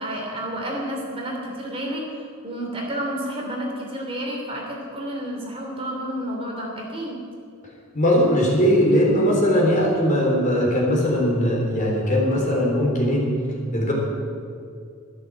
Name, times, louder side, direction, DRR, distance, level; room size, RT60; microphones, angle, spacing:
voice 1, 0.0-7.2, equal, 25° right, -1 dB, 3.0 m, -30 dB
voice 2, 7.9-13.2 13.7-13.9, equal, 35° left, -2 dB, 3.7 m, -20 dB
13.0 x 12.5 x 7.6 m, 2.3 s
head